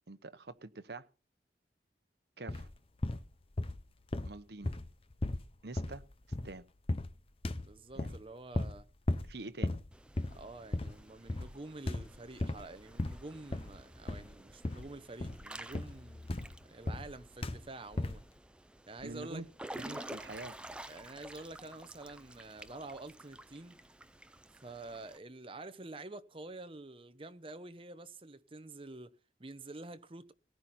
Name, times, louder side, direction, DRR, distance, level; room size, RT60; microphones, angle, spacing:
voice 1, 0.1-1.1 2.4-2.7 4.2-4.7 5.6-6.0 6.4-6.6 7.9-8.2 9.2-9.7 19.0-19.5 19.8-20.6, right 2 dB, 65° right, 1.0 m, -45 dB
sound 1, 2.5-2.8 3.0-3.9 4.1-6.6 6.9-7.2 7.4-8.2 8.5-8.8 9.1-9.3 9.6-9.9 10.2-10.5 10.7-11.0 11.3-11.6 11.9-12.7 13.0-13.8 14.1-14.4 14.6-14.9 15.2-17.2 17.4-17.7 17.9-18.3, left 2 dB, 30° left, 0.7 m, -36 dB
voice 2, 7.6-8.9 10.3-18.2 18.9-19.5 20.9-23.8 24.5-30.3, right 2 dB, 30° right, 0.9 m, -48 dB
Water / Splash splatter / Drip, 9.9-25.2, right 1 dB, 5° right, 0.6 m, -51 dB
18.5 x 10.5 x 4.3 m
head